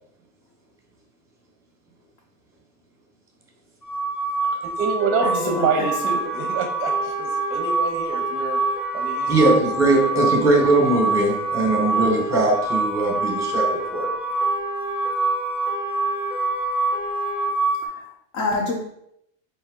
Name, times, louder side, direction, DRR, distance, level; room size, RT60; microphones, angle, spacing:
sound 1, 3.8-17.9, right 3 dB, 15° left, 0.5 m, -25 dB
voice 1, 4.6-8.6 8.9-10.1, right 5 dB, 30° right, 3 dB, 0.5 m, -27 dB
sound 2, 5.0-17.5, left 1 dB, 80° left, 1.5 m, -34 dB
voice 2, 5.2-6.2 17.8-18.8, left 3 dB, 65° left, -2 dB, 0.9 m, -28 dB
voice 3, 9.3-13.6 13.9-14.1, right 2 dB, 10° right, 0 dB, 0.9 m, -20 dB
4.3 x 2.7 x 3.7 m, 0.75 s
supercardioid pair, 150°, 38 cm